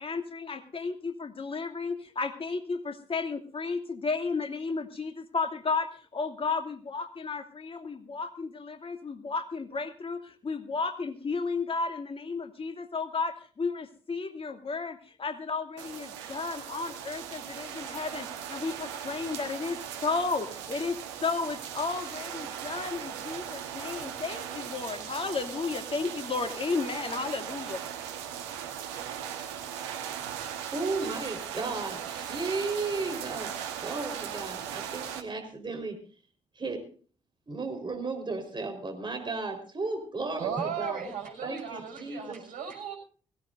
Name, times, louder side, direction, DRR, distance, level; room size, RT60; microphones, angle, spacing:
voice 1, 0.0-27.8, left 4 dB, 40° left, 6 dB, 2.6 m, -33 dB
sound 1, 15.8-35.2, right 9 dB, 85° right, 1.4 m, -38 dB
voice 2, 30.7-33.5 33.8-36.0 36.6-36.8 37.5-41.0 41.4-42.4, right 3 dB, 35° right, 3 dB, 4.4 m, -34 dB
voice 3, 40.4-43.0, right 7 dB, 70° right, 1 dB, 6.4 m, -36 dB
22.0 x 17.0 x 2.7 m, 0.42 s
hypercardioid pair, 40°, 15 cm